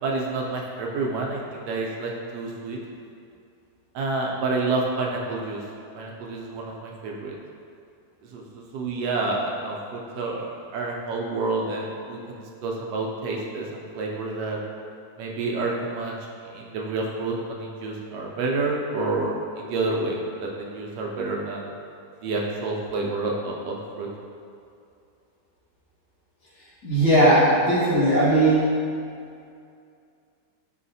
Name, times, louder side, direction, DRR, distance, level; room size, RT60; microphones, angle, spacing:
voice 1, 0.0-2.8 3.9-5.6 5.9-7.3 8.3-14.6 15.2-16.1 16.5-21.7 22.2-24.1, right 3 dB, 80° right, -1 dB, 1.1 m, -29 dB
voice 2, 26.8-28.7, right 1 dB, 75° left, -11 dB, 2.0 m, -18 dB
4.8 x 2.8 x 2.6 m, 2.4 s
omnidirectional pair, 1.9 m